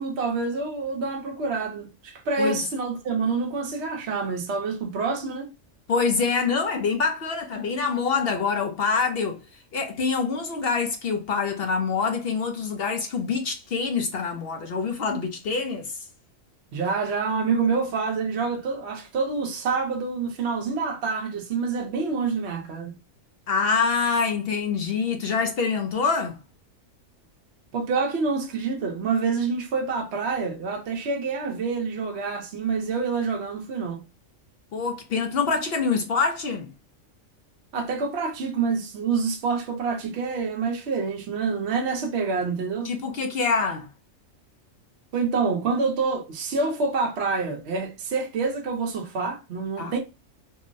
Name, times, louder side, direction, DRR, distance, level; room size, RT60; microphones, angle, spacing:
voice 1, 0.0-5.5 16.7-23.0 27.7-34.0 37.7-42.9 45.1-50.0, right 4 dB, 60° right, 0.9 m, -27 dB
voice 2, 5.9-9.4 9.7-16.0 23.5-26.4 34.7-36.7 42.8-43.9 49.8-49.9, left 5 dB, 60° left, 0.7 m, -25 dB
3.7 x 2.0 x 2.6 m
omnidirectional pair, 1.4 m